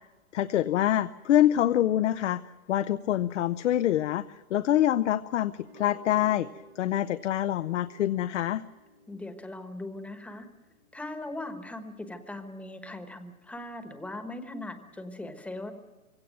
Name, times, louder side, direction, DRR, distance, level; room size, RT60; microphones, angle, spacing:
voice 1, 0.3-6.5 6.8-8.6, left 12 dB, 55° left, 11 dB, 0.7 m, -25 dB
sound 1, 5.5-12.1, right 1 dB, 70° right, 4.6 m, -55 dB
voice 2, 9.1-10.5 10.9-15.7, left 2 dB, 5° left, 8 dB, 1.2 m, -39 dB
22.5 x 17.0 x 9.3 m, 1.2 s
hypercardioid pair, 135°, 42 cm